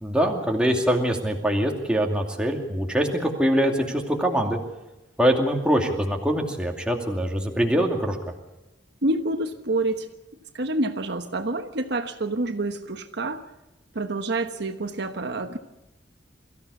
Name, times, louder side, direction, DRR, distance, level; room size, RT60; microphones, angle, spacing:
voice 1, 0.0-4.6 5.2-8.2, equal, 5° right, 1 dB, 2.5 m, -23 dB
voice 2, 9.0-10.1 10.5-13.4 13.9-15.6, right 2 dB, 60° right, 7 dB, 1.2 m, -27 dB
23.0 x 14.5 x 8.3 m, 1.0 s
head